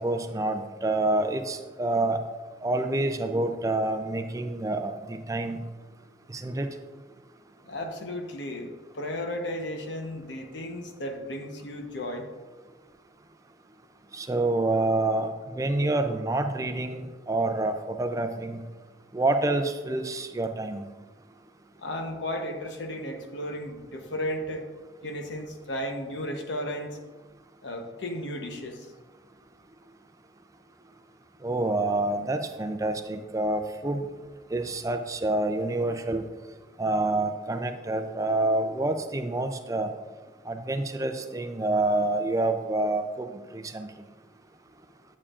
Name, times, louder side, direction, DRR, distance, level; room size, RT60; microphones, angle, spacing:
voice 1, 0.0-2.2 2.6-5.6 6.3-6.7 14.1-18.6 19.1-20.9 31.4-34.1 34.5-36.2 36.8-39.9 40.5-43.9, right 2 dB, 20° right, 7 dB, 0.4 m, -27 dB
voice 2, 7.7-12.3 21.8-24.7 25.0-27.0 27.6-28.9, left 1 dB, 85° left, 4 dB, 1.0 m, -34 dB
8.8 x 8.5 x 2.5 m, 1.3 s
head